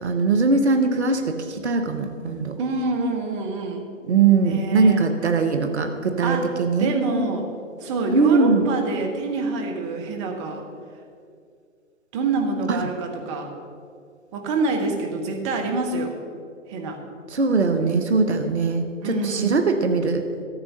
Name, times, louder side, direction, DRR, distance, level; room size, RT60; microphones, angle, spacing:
voice 1, 0.0-2.6 4.1-6.9 8.1-8.7 12.7-12.8 17.3-20.2, right 4 dB, 55° right, 7 dB, 1.1 m, -21 dB
voice 2, 2.6-3.9 4.4-5.0 6.2-6.5 6.8-7.5 7.8-10.7 12.1-13.5 14.3-16.2 16.7-17.0 19.0-19.5, right 3 dB, 25° right, 3 dB, 1.2 m, -26 dB
13.0 x 7.4 x 5.5 m, 2.3 s
figure-of-eight pair, 130°, 39 cm